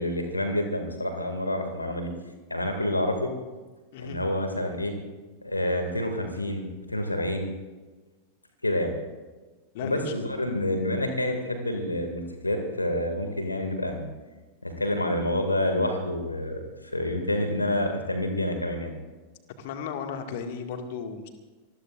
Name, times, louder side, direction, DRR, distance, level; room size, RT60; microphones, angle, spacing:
voice 1, 0.0-2.1 2.5-3.3 4.0-5.0 5.4-7.5 8.6-8.9 9.8-14.1 14.6-16.6 16.9-18.9, left 1 dB, 85° left, 5 dB, 2.3 m, -28 dB
voice 2, 9.7-10.1 19.6-21.3, left 6 dB, 50° left, 5 dB, 2.0 m, -35 dB
26.5 x 20.0 x 2.5 m, 1.3 s
figure-of-eight pair, 90°, 0 cm